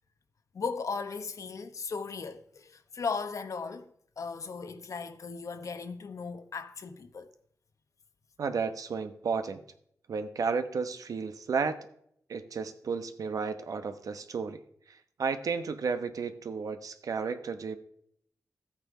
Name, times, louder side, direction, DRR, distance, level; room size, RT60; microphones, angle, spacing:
voice 1, 0.5-3.9 4.2-7.3, left 5 dB, 65° left, 1.0 m, -37 dB
voice 2, 8.4-9.6 10.1-11.8 12.3-14.6 14.9-17.8, right 5 dB, 75° right, 1.0 m, -33 dB
13.0 x 8.6 x 4.9 m
wide cardioid pair, 105°, 6 cm